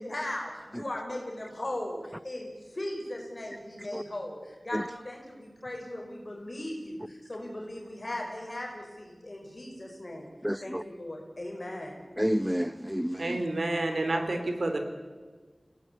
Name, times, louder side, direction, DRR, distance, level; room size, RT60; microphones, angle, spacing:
voice 1, 0.0-10.3 10.6-11.9, left 1 dB, 40° left, 5.3 m, -38 dB
voice 2, 10.4-10.8 12.2-13.4, equal, 5° right, 0.8 m, -30 dB
voice 3, 13.2-14.8, right 2 dB, 70° right, 3.9 m, -29 dB
28.5 x 18.0 x 8.3 m
wide cardioid pair, 60°, 0 cm